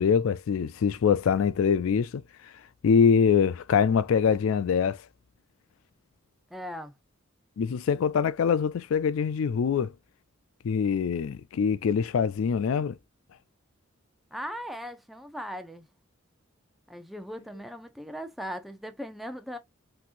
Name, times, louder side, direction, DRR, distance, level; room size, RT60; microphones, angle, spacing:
voice 1, 0.0-2.5 2.8-5.0 7.6-9.9 10.6-13.0, left 6 dB, 85° left, 0.4 m, -24 dB
voice 2, 6.5-6.9 14.3-15.9 16.9-19.6, equal, ahead, 0.7 m, -38 dB
5.8 x 3.1 x 2.5 m
head